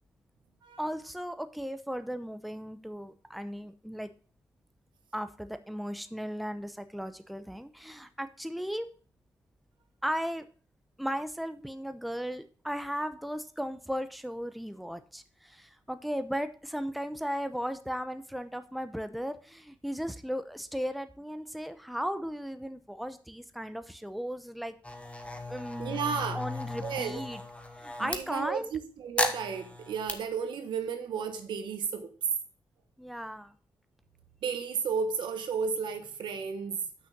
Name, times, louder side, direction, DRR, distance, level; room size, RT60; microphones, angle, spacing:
voice 1, 0.8-4.1 5.1-8.9 10.0-10.5 11.0-24.7 25.5-26.0 26.3-27.4 27.8-28.7 33.0-33.5, equal, ahead, 0.7 m, -36 dB
sound 1, 24.8-28.2 29.2-30.2, left 2 dB, 15° left, 1.1 m, -35 dB
voice 2, 25.8-26.4 26.8-27.2 28.0-32.1 34.4-36.8, right 6 dB, 90° right, 1.2 m, -33 dB
6.5 x 5.7 x 6.0 m
cardioid pair, 80°, 8 cm